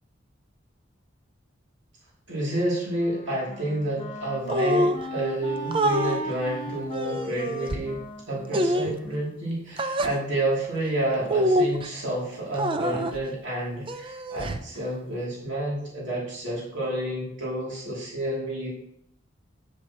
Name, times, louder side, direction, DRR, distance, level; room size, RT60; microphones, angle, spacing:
voice 1, 2.3-18.7, right 1 dB, 60° right, -5 dB, 2.6 m, -29 dB
Wind instrument woodwind instrument, 2.5-9.7, equal, 25° left, 0.7 m, -38 dB
sound 1, 4.5-5.0 5.7-6.2 6.9-7.8 8.5-9.0 9.8-10.2 11.3-11.9 12.5-13.2 13.9-14.7, equal, 25° right, 0.4 m, -25 dB
8.5 x 7.7 x 2.9 m, 0.72 s
head